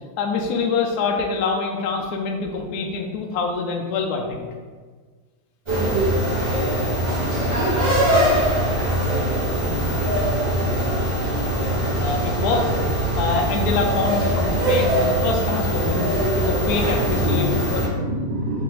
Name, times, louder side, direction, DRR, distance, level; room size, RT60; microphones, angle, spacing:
voice 1, 0.2-4.5 12.0-12.7 13.2-16.1 16.4-17.8, left 4 dB, 80° left, 1 dB, 0.8 m, -25 dB
sound 1, 5.7-17.9, equal, 25° right, 0.6 m, -22 dB
voice 2, 6.9-8.3 8.7-11.1 16.5-18.6, right 1 dB, 75° right, -4 dB, 1.2 m, -31 dB
3.0 x 2.7 x 4.0 m, 1.5 s
omnidirectional pair, 2.2 m